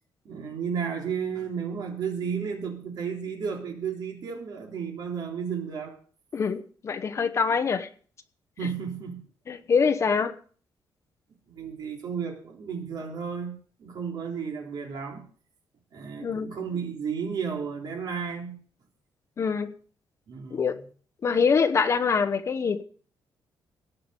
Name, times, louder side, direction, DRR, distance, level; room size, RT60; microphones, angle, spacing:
voice 1, 0.3-6.0 8.6-9.2 11.5-15.3 15.9-18.6 20.3-20.8, right 6 dB, 55° right, 1 dB, 3.6 m, -33 dB
voice 2, 6.3-7.9 9.5-10.3 16.2-16.5 19.4-19.7 20.5-20.8 21.2-22.8, left 5 dB, 35° left, 10 dB, 1.0 m, -24 dB
17.5 x 6.0 x 8.1 m, 0.43 s
wide cardioid pair, 180°, 8 cm